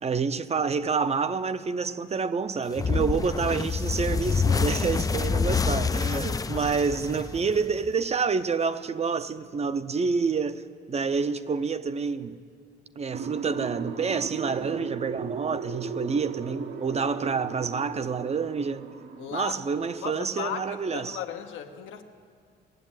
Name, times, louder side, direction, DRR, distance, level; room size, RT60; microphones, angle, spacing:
voice 1, 0.0-12.4 13.0-18.8 19.3-21.2, right 5 dB, 35° right, 0.6 m, -28 dB
sound 1, 2.8-7.9, left 5 dB, 20° left, 0.3 m, -27 dB
sound 2, 13.1-19.9, right 6 dB, 70° right, 1.1 m, -37 dB
voice 2, 19.2-19.6 20.0-22.0, left 8 dB, 85° left, 1.1 m, -36 dB
19.0 x 7.3 x 9.0 m
cardioid pair, 90°, 20 cm